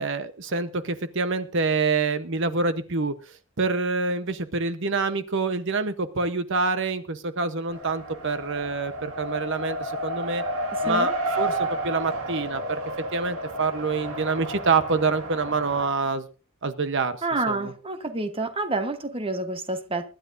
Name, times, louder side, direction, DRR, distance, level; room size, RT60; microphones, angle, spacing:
voice 1, 0.0-3.1 3.6-10.4 10.8-12.8 13.1-16.3 16.6-17.2 17.5-17.7, right 4 dB, 60° right, 1.0 m, -26 dB
Race car auto racing, 7.7-15.9, right 1 dB, 85° right, 2.2 m, -31 dB
voice 2, 17.2-20.1, right 2 dB, 25° right, 1.2 m, -28 dB
23.5 x 12.0 x 2.6 m
head